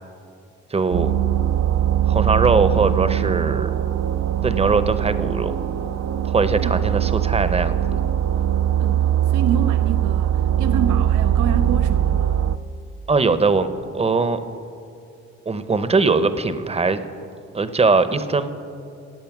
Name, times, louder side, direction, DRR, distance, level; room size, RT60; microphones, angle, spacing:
voice 1, 0.7-1.1 2.0-3.7 4.4-5.6 6.3-8.0 13.1-14.4 15.5-17.0 17.5-18.5, right 4 dB, 20° right, 12 dB, 0.8 m, -20 dB
sound 1, 0.9-12.6, right 10 dB, 55° right, 0.5 m, -21 dB
voice 2, 6.6-7.4 8.8-12.4, right 7 dB, 90° right, 8 dB, 0.7 m, -28 dB
16.5 x 8.4 x 6.0 m, 2.5 s
cardioid pair, 90°, 30 cm